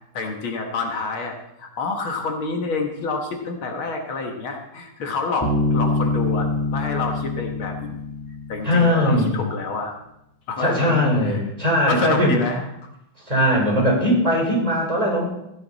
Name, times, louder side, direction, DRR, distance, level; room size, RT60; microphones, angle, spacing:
voice 1, 0.1-8.0 8.5-9.9 10.5-11.4 11.9-12.9, left 3 dB, 70° left, 3 dB, 2.3 m, -28 dB
Bass guitar, 5.4-9.1, left 3 dB, 10° left, 2.1 m, -25 dB
voice 2, 8.6-9.4 10.6-12.3 13.3-15.2, equal, 15° right, -2 dB, 4.3 m, -19 dB
15.5 x 11.0 x 4.1 m, 0.84 s
omnidirectional pair, 2.4 m